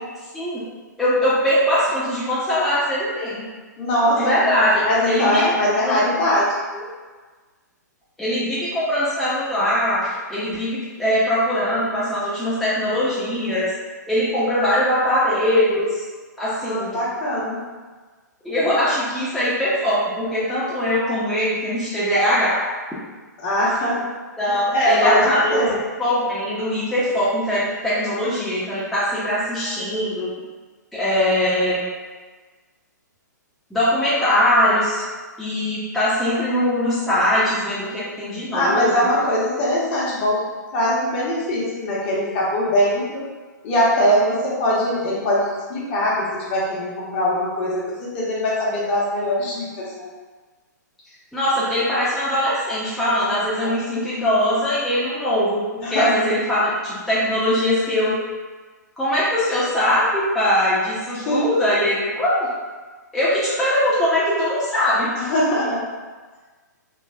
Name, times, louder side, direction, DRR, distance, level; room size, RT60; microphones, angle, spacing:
voice 1, 1.0-3.4 4.1-5.5 5.9-6.1 8.2-13.7 14.1-16.0 16.4-17.0 18.4-22.6 24.4-25.7 26.0-30.3 30.9-31.8 33.7-35.0 35.4-39.1 51.3-58.1 59.0-62.5 63.1-65.1, left 1 dB, ahead, -11 dB, 0.6 m, -21 dB
voice 2, 3.8-4.2 4.8-6.9 16.7-17.6 23.4-24.0 24.7-25.8 38.5-40.5 40.7-43.2 43.6-50.1 53.6-53.7 55.8-56.1 61.1-61.4 65.2-65.8, equal, 40° left, -6 dB, 0.9 m, -21 dB
3.2 x 2.3 x 2.2 m, 1.4 s
figure-of-eight pair, 120°, 10 cm